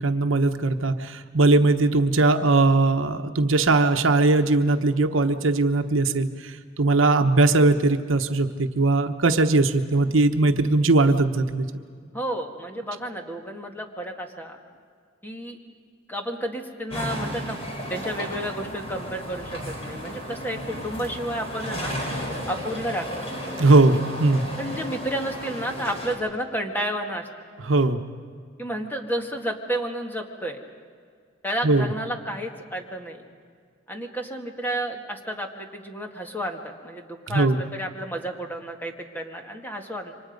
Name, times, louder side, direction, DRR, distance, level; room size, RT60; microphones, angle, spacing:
voice 1, 0.0-11.7 23.6-24.5 27.7-28.0 31.6-31.9 37.3-37.6, right 2 dB, 70° right, 7 dB, 1.0 m, -20 dB
voice 2, 12.1-14.6 15.2-15.6 16.1-17.6 17.9-21.9 22.5-23.2 23.7-23.9 24.6-27.3 28.6-30.6 31.4-33.2 33.9-40.1, right 1 dB, 10° left, 3 dB, 1.8 m, -31 dB
sound 1, 16.9-26.2, equal, 30° left, 4.0 m, -33 dB
28.0 x 25.0 x 5.3 m, 2.1 s
head